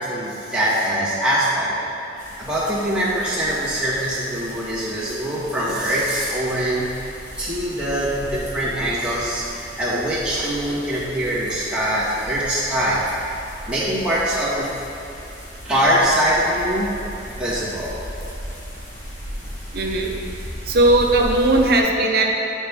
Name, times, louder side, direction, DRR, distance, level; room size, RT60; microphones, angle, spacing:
voice 1, 0.0-1.8 2.1-6.9 7.4-13.1 13.7-14.7 15.6-16.9 17.3-18.0, right 1 dB, 5° right, -10 dB, 1.7 m, -23 dB
sound 1, 2.2-21.8, equal, 45° left, 1.4 m, -37 dB
voice 2, 19.7-20.1 20.7-22.3, right 2 dB, 55° right, 1 dB, 0.8 m, -17 dB
8.7 x 6.2 x 3.5 m, 2.8 s
head